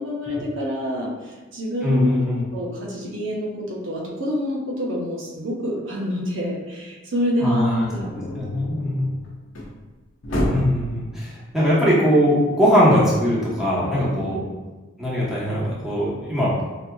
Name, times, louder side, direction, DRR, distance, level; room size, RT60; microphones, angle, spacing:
voice 1, 0.0-2.1 2.5-8.1 14.1-14.3, equal, 75° right, -4 dB, 0.8 m, -27 dB
voice 2, 1.8-2.4 7.4-7.8 8.3-9.1 10.5-14.4 15.0-16.5, equal, ahead, -8 dB, 0.9 m, -20 dB
sound 1, 7.9-9.8 10.2-10.9, left 1 dB, 80° left, 0.7 m, -28 dB
4.7 x 2.7 x 2.3 m, 1.2 s
head